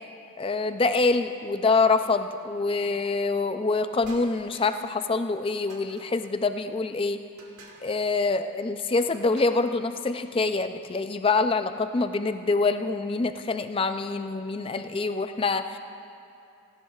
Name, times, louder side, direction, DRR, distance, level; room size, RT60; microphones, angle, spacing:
voice 1, 0.4-7.2 7.8-15.8, left 3 dB, 25° left, 9 dB, 0.4 m, -25 dB
sound 1, 4.0-5.0 5.7-6.3 7.4-8.0 9.0-9.7, right 2 dB, 80° right, 1.5 m, -51 dB
18.0 x 17.0 x 2.4 m, 2.7 s
head